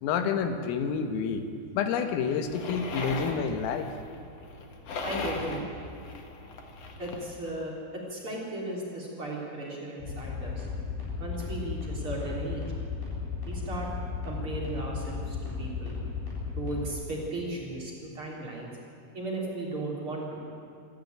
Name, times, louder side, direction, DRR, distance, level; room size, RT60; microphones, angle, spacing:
voice 1, 0.0-1.5 1.8-3.9, left 6 dB, 90° left, 7 dB, 4.0 m, -29 dB
sound 1, 2.5-7.3, left 3 dB, 75° left, 1.4 m, -38 dB
voice 2, 5.0-5.6 7.0-7.7 8.1-10.7 11.2-12.6 13.5-13.9 14.2-16.0 16.5-18.7 19.1-20.4, right 2 dB, 30° right, -3 dB, 3.5 m, -36 dB
sound 2, 10.0-16.9, left 5 dB, 45° left, 9.4 m, -35 dB
26.0 x 13.0 x 9.3 m, 2.4 s
omnidirectional pair, 5.8 m